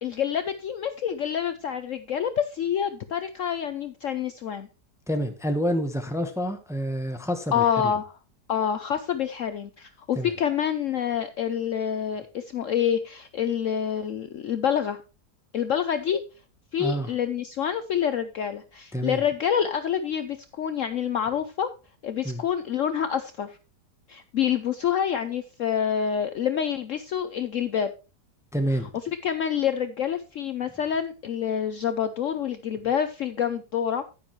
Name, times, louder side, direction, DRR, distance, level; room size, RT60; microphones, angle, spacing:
voice 1, 0.0-4.7 7.5-8.2 8.5-15.0 15.5-16.2 16.7-21.7 22.0-23.6 24.1-27.9 29.1-34.0, left 8 dB, 60° left, 0.9 m, -27 dB
voice 2, 5.1-7.9 10.1-10.3 16.8-17.1 18.9-19.2 22.2-22.4 28.5-28.9, equal, ahead, 1.0 m, -28 dB
9.9 x 9.7 x 3.1 m
omnidirectional pair, 1.8 m